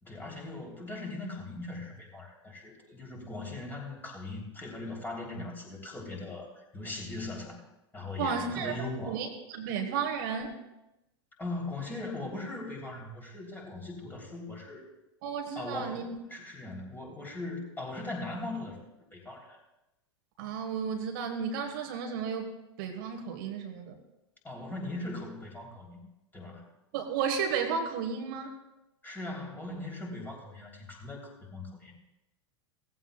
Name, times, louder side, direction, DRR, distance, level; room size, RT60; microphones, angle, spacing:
voice 1, 0.0-7.6 7.9-9.2 11.4-14.9 15.5-18.8 19.1-19.6 24.4-26.0 26.3-26.7 29.0-31.9, left 2 dB, 15° left, -1 dB, 3.2 m, -39 dB
voice 2, 8.2-8.7 9.0-10.6 15.2-16.2 20.4-22.5 22.8-24.0 26.9-28.5, right 6 dB, 50° right, 4 dB, 1.4 m, -33 dB
17.5 x 14.5 x 2.3 m, 0.95 s
figure-of-eight pair, 90°, 14 cm